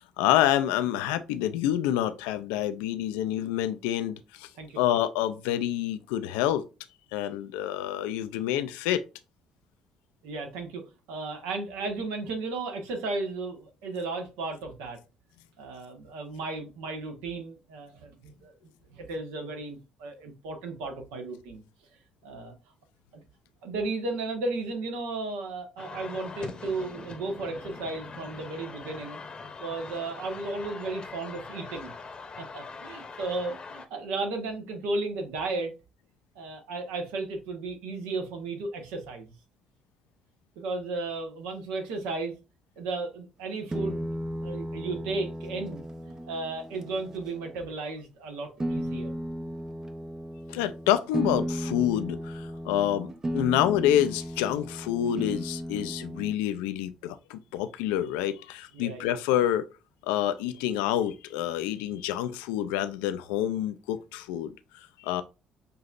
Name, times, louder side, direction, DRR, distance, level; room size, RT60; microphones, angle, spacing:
voice 1, 0.0-4.5 4.8-6.6 7.1-9.0 50.5-59.7 60.0-65.2, left 11 dB, 75° left, 0.4 m, -28 dB
voice 2, 10.2-15.0 15.6-18.5 18.9-21.6 22.2-22.5 23.1-23.2 23.6-29.2 29.6-31.9 32.4-35.7 36.3-39.3 40.6-42.4 42.8-44.1 44.4-45.9 46.3-49.1 58.7-59.1, right 3 dB, 70° right, 1.1 m, -34 dB
sound 1, 25.8-33.9, left 4 dB, 35° left, 0.9 m, -42 dB
sound 2, 43.7-47.6 48.6-56.3, equal, 20° right, 0.6 m, -35 dB
6.7 x 2.8 x 2.4 m
hypercardioid pair, 50°, 3 cm